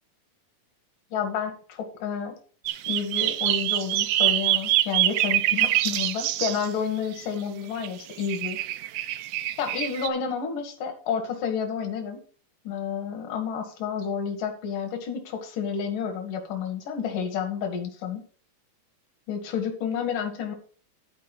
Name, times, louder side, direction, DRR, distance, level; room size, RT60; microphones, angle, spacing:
voice 1, 1.1-2.4 2.8-8.6 9.6-12.2 12.6-18.2 19.3-20.6, left 7 dB, 75° left, 4 dB, 3.3 m, -30 dB
sound 1, 2.7-6.7 7.8-7.9 8.2-10.1, right 14 dB, 75° right, 2.0 m, -25 dB
12.5 x 4.6 x 6.0 m, 0.43 s
omnidirectional pair, 3.8 m